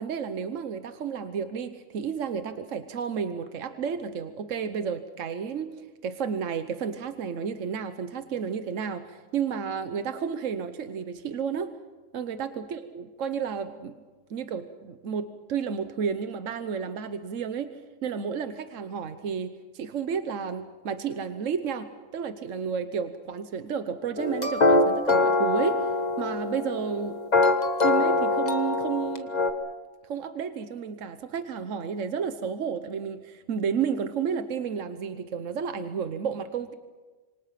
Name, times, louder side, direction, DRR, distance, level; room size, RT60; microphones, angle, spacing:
voice 1, 0.0-11.7 12.1-14.0 14.3-17.8 18.0-25.9 26.2-27.2 27.8-29.3 30.0-36.7, right 6 dB, 75° right, 9 dB, 1.3 m, -32 dB
sound 1, 24.2-29.5, left 2 dB, 35° left, 1.5 m, -23 dB
27.0 x 24.5 x 5.9 m, 1.3 s
omnidirectional pair, 1.3 m